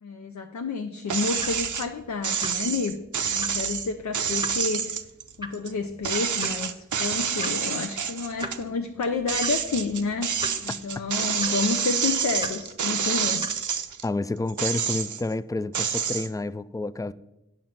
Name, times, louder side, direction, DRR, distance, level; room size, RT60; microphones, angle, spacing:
voice 1, 0.0-5.0 5.4-13.4, left 4 dB, 70° left, 0.6 m, -30 dB
sound 1, 1.1-1.9 2.2-5.7 6.0-8.6 9.0-14.0 14.5-15.3 15.7-16.3, right 7 dB, 85° right, 0.6 m, -28 dB
sound 2, 1.3-13.9, left 1 dB, 15° right, 0.9 m, -43 dB
voice 2, 14.0-17.1, left 2 dB, 10° left, 0.3 m, -29 dB
9.1 x 6.4 x 5.8 m
wide cardioid pair, 65°, 29 cm